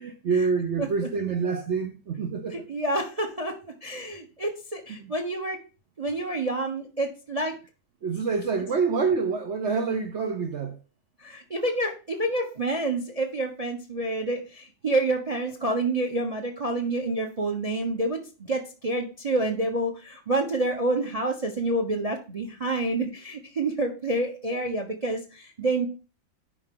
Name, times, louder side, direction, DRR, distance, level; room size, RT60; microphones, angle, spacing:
voice 1, 0.0-2.6 4.9-5.1 8.0-10.8 24.5-24.6, right 5 dB, 65° right, 0.7 m, -27 dB
voice 2, 2.5-5.6 6.0-7.5 11.2-18.2 18.5-25.9, right 2 dB, 25° right, 0.8 m, -28 dB
9.8 x 5.5 x 3.8 m
omnidirectional pair, 2.2 m